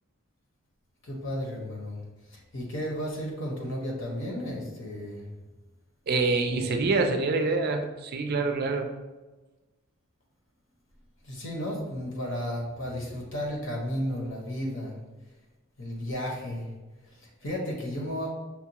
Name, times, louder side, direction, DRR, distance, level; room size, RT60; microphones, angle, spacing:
voice 1, 1.0-2.0 2.3-5.3 6.4-6.7 11.2-15.0 15.8-16.7 17.0-18.3, equal, 60° left, -2 dB, 1.1 m, -33 dB
voice 2, 6.1-8.9, right 3 dB, 45° right, 6 dB, 0.4 m, -26 dB
5.8 x 2.3 x 2.9 m, 1.2 s
head